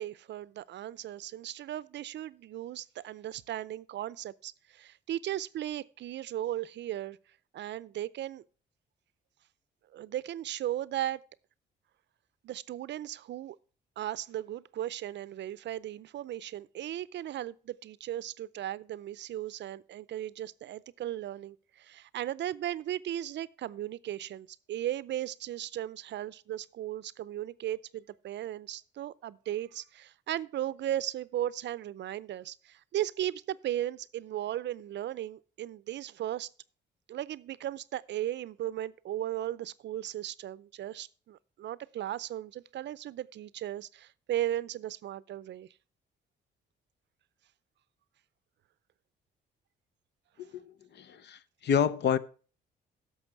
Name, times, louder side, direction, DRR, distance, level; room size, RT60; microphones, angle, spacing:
voice 1, 0.0-7.2 7.5-8.4 9.9-11.2 12.4-13.6 14.0-36.5 37.1-45.7, right 12 dB, 65° right, 0.5 m, -36 dB
voice 2, 50.4-52.2, left 7 dB, 60° left, 0.8 m, -29 dB
11.0 x 6.9 x 4.5 m
cardioid pair, 90°, 20 cm